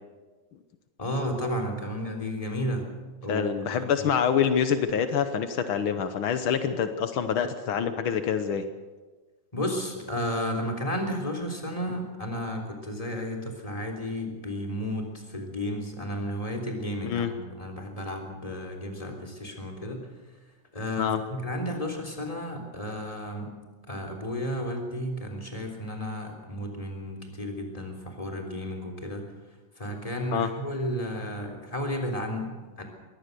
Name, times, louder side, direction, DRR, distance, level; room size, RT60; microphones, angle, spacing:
voice 1, 1.0-2.9 3.2-4.1 9.5-20.1 20.7-23.5 23.9-29.2 29.8-32.8, equal, 10° left, 3 dB, 3.3 m, -33 dB
voice 2, 3.3-8.6 17.0-17.3 21.0-21.2 30.3-30.5, left 7 dB, 90° left, 9 dB, 1.1 m, -26 dB
22.5 x 17.5 x 6.8 m, 1.3 s
omnidirectional pair, 3.7 m